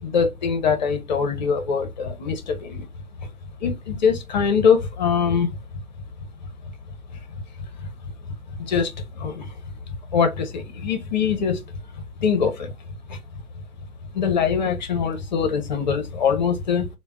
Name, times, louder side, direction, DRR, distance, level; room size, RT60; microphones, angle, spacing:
voice 1, 0.0-2.8 3.2-3.3 3.6-5.6 7.8-7.9 8.6-9.5 10.1-11.7 12.0-12.7 13.1-13.2 14.1-16.9, left 6 dB, 30° left, 0.5 m, -23 dB
3.4 x 2.1 x 3.4 m
hypercardioid pair, 145°, 44 cm